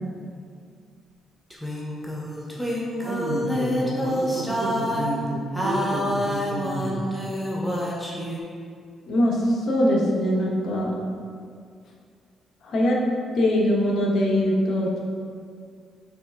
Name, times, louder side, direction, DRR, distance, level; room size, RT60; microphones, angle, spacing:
sound 1, 1.5-5.2 5.5-8.4, equal, 5° left, 1.0 m, -27 dB
voice 1, 2.4-2.7 3.0-7.3, right 1 dB, 90° right, -1 dB, 1.0 m, -31 dB
voice 2, 9.1-11.0 12.6-13.0 13.3-15.0, left 1 dB, 65° left, -2 dB, 1.2 m, -22 dB
6.0 x 4.3 x 3.6 m, 2.2 s
cardioid pair, 90°, 0 cm